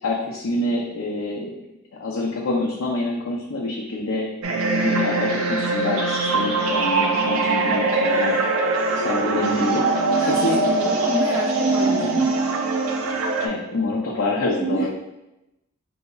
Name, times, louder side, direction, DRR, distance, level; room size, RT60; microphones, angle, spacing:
voice 1, 0.0-1.5 1.9-4.3 4.7-8.4 9.0-9.8 10.4-10.6 12.0-12.3 13.4-14.9, left 2 dB, 75° left, -4 dB, 0.5 m, -26 dB
sound 1, 4.4-13.5, right 3 dB, 90° right, 0.5 m, -22 dB
voice 2, 10.2-12.2 14.6-14.9, right 2 dB, 15° right, -3 dB, 0.6 m, -28 dB
4.0 x 2.7 x 2.3 m, 0.92 s
head